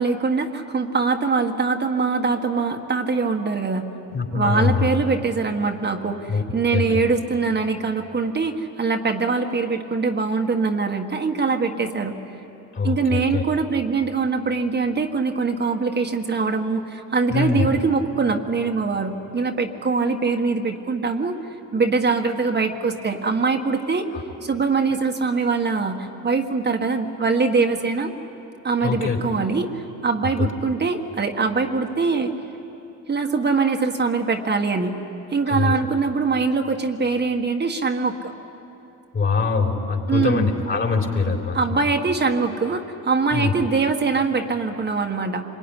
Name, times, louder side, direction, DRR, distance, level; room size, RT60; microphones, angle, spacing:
voice 1, 0.0-3.8 4.3-12.2 12.8-21.4 21.7-24.0 24.4-28.1 28.6-32.3 33.1-35.0 35.3-38.3 40.1-40.5 41.5-45.4, right 4 dB, 35° right, 3 dB, 1.5 m, -23 dB
voice 2, 4.1-4.9 6.3-6.4 6.7-6.9 12.7-13.4 17.3-17.7 24.0-24.2 28.8-29.2 30.4-30.5 35.5-35.8 39.1-41.8 43.3-43.5, left 4 dB, 40° left, 2 dB, 3.9 m, -23 dB
25.5 x 22.5 x 10.0 m, 2.9 s
cardioid pair, 90°, 30 cm